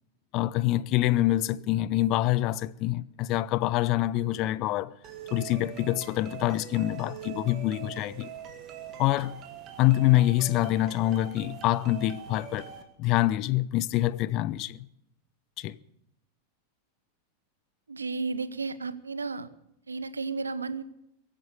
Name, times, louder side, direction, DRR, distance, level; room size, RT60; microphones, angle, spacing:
voice 1, 0.3-4.9 5.3-8.3 9.0-9.3 9.8-12.7 13.0-14.9 15.6-15.8, left 15 dB, 40° left, 0.5 m, -26 dB
sound 1, 5.0-12.8, right 9 dB, 35° right, 2.2 m, -43 dB
voice 2, 17.9-19.5 19.9-20.8, right 4 dB, 75° right, 1.0 m, -33 dB
22.5 x 9.1 x 6.8 m
figure-of-eight pair, 90°, 0 cm